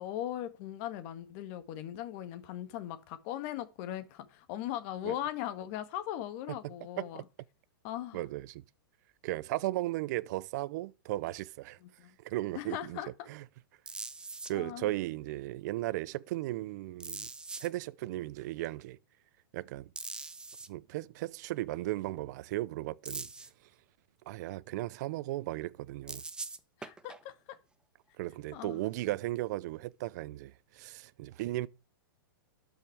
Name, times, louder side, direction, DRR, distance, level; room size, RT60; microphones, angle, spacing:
voice 1, 0.0-7.2 7.8-8.2 11.8-12.1 12.5-13.3 14.5-14.9 26.8-27.6 28.5-28.8, left 12 dB, 40° left, 1.7 m, -39 dB
voice 2, 8.1-8.6 9.2-11.8 12.2-13.0 13.3-13.4 14.5-17.3 17.6-19.0 19.5-19.9 20.7-23.3 24.3-26.2 28.2-31.7, right 16 dB, 50° right, 0.6 m, -36 dB
sound 1, 13.9-14.5 17.0-17.7 20.0-20.7 23.1-23.5 26.1-27.2 29.7-29.8, right 3 dB, 5° right, 0.7 m, -41 dB
12.0 x 5.8 x 4.7 m
hypercardioid pair, 145°, 12 cm